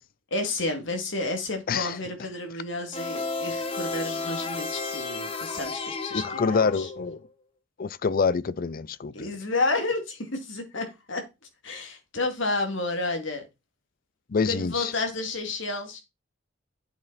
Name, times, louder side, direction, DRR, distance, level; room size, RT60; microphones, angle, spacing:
voice 1, 0.3-6.9 9.1-11.3 11.6-13.5 14.5-16.0, left 2 dB, 65° left, 2.4 m, -31 dB
sound 1, 2.9-7.3, left 3 dB, 30° left, 1.2 m, -32 dB
voice 2, 6.1-7.2 7.8-9.3 14.3-14.9, left 5 dB, 45° left, 0.5 m, -26 dB
8.2 x 6.5 x 4.1 m
head